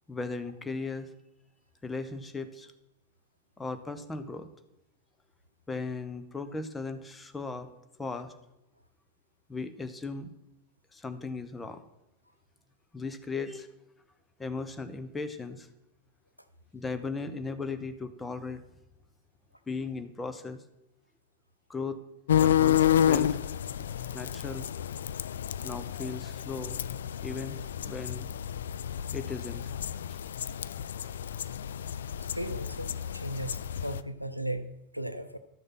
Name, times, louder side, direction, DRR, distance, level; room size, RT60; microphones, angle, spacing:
voice 1, 0.1-1.1 1.8-2.7 3.6-4.5 5.7-7.7 8.0-8.3 9.5-10.3 10.9-11.8 12.9-13.7 14.4-15.7 16.7-18.6 19.7-20.6 21.7-22.0 22.4-23.4 24.1-24.7 25.6-26.8 27.2-28.3 29.1-29.6 30.1-30.2, left 4 dB, 10° left, 9 dB, 0.8 m, -37 dB
sound 1, 22.3-34.0, left 10 dB, 65° left, 0.3 m, -30 dB
voice 2, 32.3-35.4, right 1 dB, 90° right, 11 dB, 0.5 m, -36 dB
12.0 x 6.5 x 5.8 m, 0.88 s
figure-of-eight pair, 90°, 0 cm